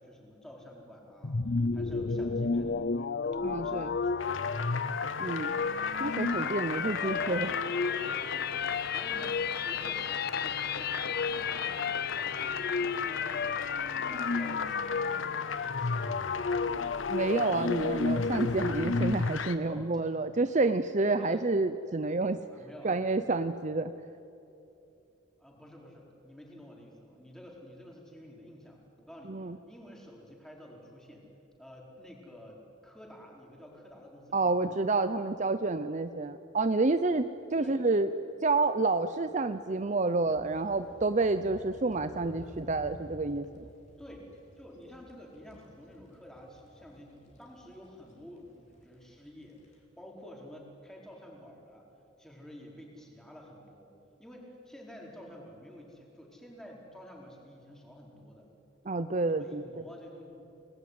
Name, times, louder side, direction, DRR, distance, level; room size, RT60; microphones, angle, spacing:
voice 1, 0.0-4.7 6.3-6.5 7.0-13.6 14.1-16.8 19.6-19.9 21.1-21.4 22.5-22.9 25.4-31.3 31.6-34.8 37.6-37.8 44.0-44.2 44.6-51.9 52.2-53.9 54.2-58.5 59.3-60.4, equal, 5° left, -1 dB, 4.7 m, -50 dB
sound 1, 1.2-19.4, left 5 dB, 50° left, 0.7 m, -31 dB
voice 2, 3.4-3.9 5.2-5.5 6.0-7.5 17.1-22.4 22.8-23.9 29.3-29.6 34.3-37.2 37.5-38.1 38.4-43.5 58.9-59.6, right 3 dB, 35° right, 11 dB, 0.6 m, -29 dB
sound 2, 4.2-19.6, left 5 dB, 75° left, 1.3 m, -40 dB
sound 3, 40.1-49.8, equal, 35° left, 4.5 m, -54 dB
29.0 x 20.0 x 9.6 m, 2.8 s
head